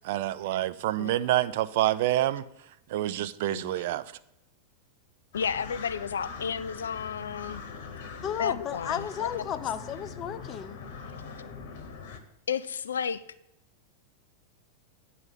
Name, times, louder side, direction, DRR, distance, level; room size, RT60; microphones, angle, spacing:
voice 1, 0.0-2.4 2.9-4.0, right 14 dB, 50° right, 0.4 m, -27 dB
voice 2, 3.5-3.8 5.3-7.6 8.4-9.4 12.5-13.2, left 7 dB, 65° left, 0.3 m, -32 dB
sound 1, 5.3-12.2, left 5 dB, 50° left, 1.0 m, -42 dB
voice 3, 8.2-10.8, left 9 dB, 30° left, 0.6 m, -33 dB
9.5 x 4.1 x 7.4 m
figure-of-eight pair, 90°, 0 cm